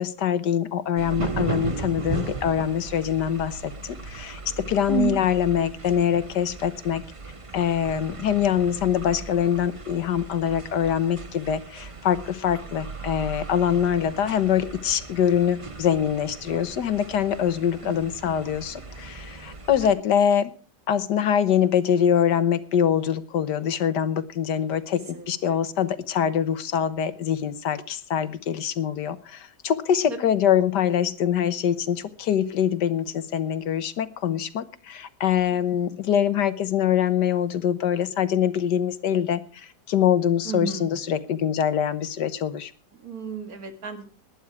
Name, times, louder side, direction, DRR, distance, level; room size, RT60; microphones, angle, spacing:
voice 1, 0.0-7.0 7.5-20.5 20.9-42.7, left 9 dB, 80° left, 13 dB, 1.7 m, -24 dB
sound 1, 1.0-19.9, right 4 dB, 25° right, 1.0 m, -37 dB
voice 2, 4.9-5.2 17.8-18.3 19.8-19.9 25.1-25.6 30.1-30.2 40.4-40.9 43.0-44.1, right 8 dB, 60° right, 7 dB, 2.5 m, -31 dB
19.5 x 11.0 x 4.8 m, 0.36 s
omnidirectional pair, 1.8 m